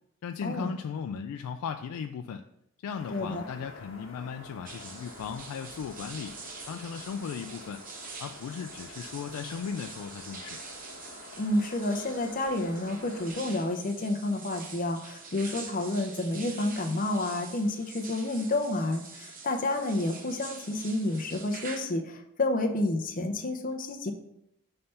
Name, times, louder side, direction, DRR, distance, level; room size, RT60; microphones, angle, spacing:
voice 1, 0.2-2.5 2.8-6.4 6.7-7.8 8.2-10.6, left 6 dB, 85° left, 7 dB, 0.3 m, -37 dB
sound 1, 3.0-13.3, left 2 dB, 60° left, 1.2 m, -48 dB
voice 2, 3.1-3.4 11.4-24.1, left 2 dB, 40° left, 4 dB, 0.6 m, -30 dB
sound 2, 4.7-21.8, right 4 dB, 40° right, 0.8 m, -45 dB
5.6 x 3.3 x 5.5 m, 0.78 s
head